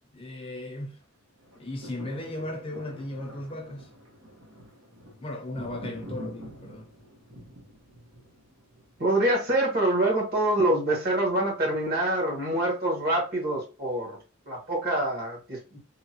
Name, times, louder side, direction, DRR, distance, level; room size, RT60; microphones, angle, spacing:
voice 1, 0.1-1.0 1.6-3.9 5.2-6.9, left 1 dB, 25° left, 0.6 m, -36 dB
sound 1, 1.4-9.7 10.2-10.3, equal, 80° right, 1.3 m, -45 dB
voice 2, 9.0-14.2 14.5-15.8, right 1 dB, 50° right, 1.4 m, -25 dB
3.6 x 2.2 x 2.9 m
head